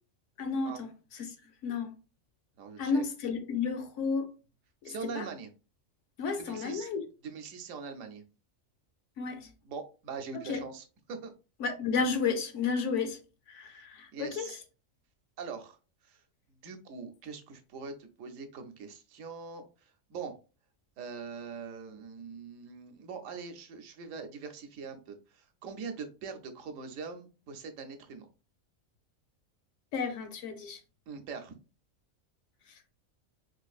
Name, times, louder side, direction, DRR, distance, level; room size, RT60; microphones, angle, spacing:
voice 1, 0.4-0.9 1.2-1.3 1.6-1.9 2.8-4.3 4.8-5.2 6.2-7.0 9.2-9.5 10.5-10.6 11.6-13.2 13.5-14.5 29.9-30.8, left 5 dB, 70° left, 0.9 m, -32 dB
voice 2, 2.6-3.0 4.8-5.5 6.4-6.9 7.2-8.2 9.6-11.3 13.7-13.9 14.1-14.6 15.4-15.8 16.0-16.2 16.5-20.3 21.0-28.3 31.1-31.5, right 5 dB, 75° right, 1.0 m, -42 dB
4.4 x 2.5 x 2.3 m
omnidirectional pair, 1.4 m